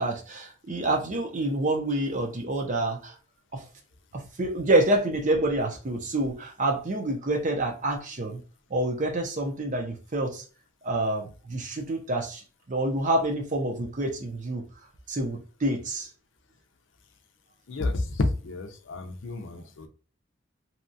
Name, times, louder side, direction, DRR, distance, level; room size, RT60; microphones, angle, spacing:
voice 1, 0.0-3.1 3.5-3.6 4.1-8.4 8.7-10.4 10.8-12.4 12.7-14.6 15.1-16.1, right 1 dB, 40° right, 0.6 m, -27 dB
voice 2, 17.7-19.9, left 2 dB, 70° left, 0.5 m, -30 dB
2.8 x 2.3 x 2.6 m
head